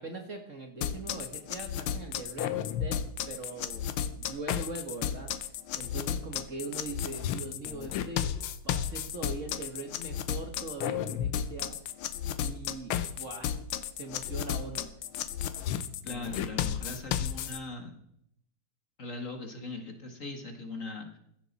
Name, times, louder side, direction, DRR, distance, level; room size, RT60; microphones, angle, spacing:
voice 1, 0.0-3.9 4.2-5.3 5.7-11.7 12.4-13.5 13.9-14.9, right 3 dB, 40° right, 4 dB, 1.5 m, -41 dB
sound 1, 0.8-17.6, left 9 dB, 80° left, 1.6 m, -33 dB
voice 2, 16.0-18.0 19.0-21.2, left 3 dB, 40° left, 4 dB, 1.9 m, -40 dB
16.0 x 13.0 x 4.2 m, 0.75 s
omnidirectional pair, 2.3 m